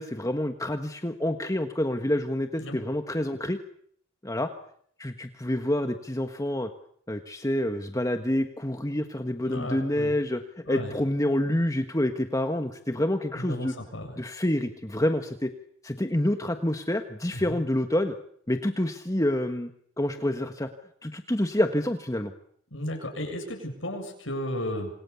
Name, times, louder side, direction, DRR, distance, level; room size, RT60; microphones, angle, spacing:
voice 1, 0.0-3.6 4.2-4.5 5.0-6.7 7.1-13.7 14.1-15.5 15.8-18.1 18.5-19.7 20.0-20.7 21.0-22.3, left 1 dB, 15° left, 7 dB, 1.4 m, -27 dB
voice 2, 9.4-10.1 10.7-10.9 13.3-14.2 17.3-17.6 22.7-24.9, left 1 dB, 65° left, 3 dB, 7.3 m, -34 dB
28.0 x 27.5 x 7.1 m, 0.66 s
head